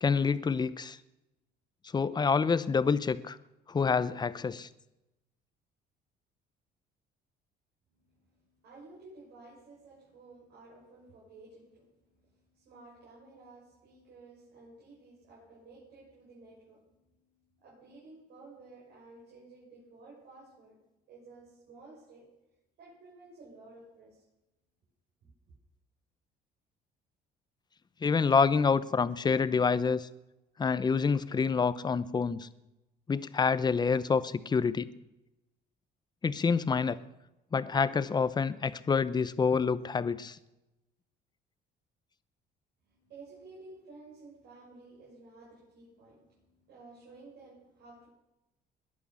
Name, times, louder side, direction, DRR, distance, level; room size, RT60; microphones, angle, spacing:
voice 1, 0.0-1.0 1.9-3.4 3.7-4.7 28.0-30.1 30.6-32.5 33.1-34.9 36.2-37.0 37.5-40.4, left 5 dB, 25° left, 15 dB, 0.8 m, -27 dB
voice 2, 8.0-20.8 21.1-22.3 22.8-24.2 42.8-48.1, right 3 dB, 75° right, -5 dB, 7.1 m, -54 dB
21.5 x 8.7 x 7.0 m, 0.95 s
cardioid pair, 110°, 17 cm